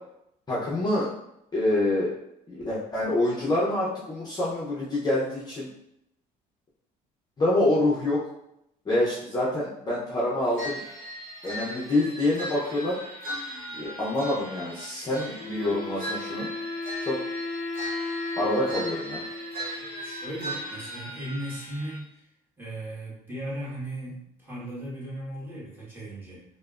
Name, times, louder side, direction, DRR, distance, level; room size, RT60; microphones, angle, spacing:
voice 1, 0.5-1.1 1.5-2.1 2.5-5.7 7.4-8.2 8.9-10.8 11.4-13.0 13.7-16.5 17.1-17.2 18.4-19.2, left 1 dB, 25° left, -7 dB, 0.6 m, -26 dB
sound 1, 10.5-22.0, equal, 55° right, 1.0 m, -38 dB
Wind instrument woodwind instrument, 15.4-20.9, left 3 dB, 65° left, 0.4 m, -35 dB
voice 2, 19.7-22.2 22.6-26.4, right 1 dB, 10° right, -9 dB, 1.4 m, -37 dB
3.2 x 2.1 x 2.4 m, 0.79 s
cardioid pair, 110°, 17 cm